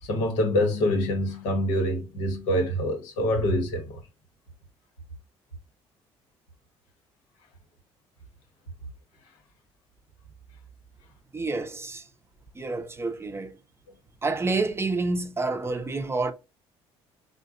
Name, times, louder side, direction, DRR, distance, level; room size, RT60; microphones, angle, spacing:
voice 1, 0.0-4.0, left 1 dB, 90° left, 1.0 m, -25 dB
voice 2, 11.3-12.1 12.5-13.6 14.2-16.3, right 3 dB, 20° right, 0.5 m, -28 dB
3.8 x 2.2 x 2.4 m
supercardioid pair, 80°, 12 cm